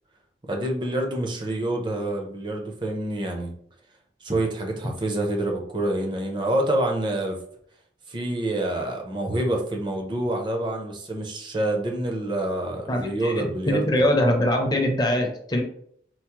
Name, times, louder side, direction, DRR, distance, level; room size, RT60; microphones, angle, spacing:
voice 1, 0.5-3.5 4.2-7.4 8.1-13.8, right 1 dB, 25° right, 2 dB, 0.5 m, -27 dB
voice 2, 12.9-15.6, left 1 dB, 20° left, 2 dB, 0.5 m, -23 dB
4.5 x 2.0 x 2.9 m, 0.65 s
head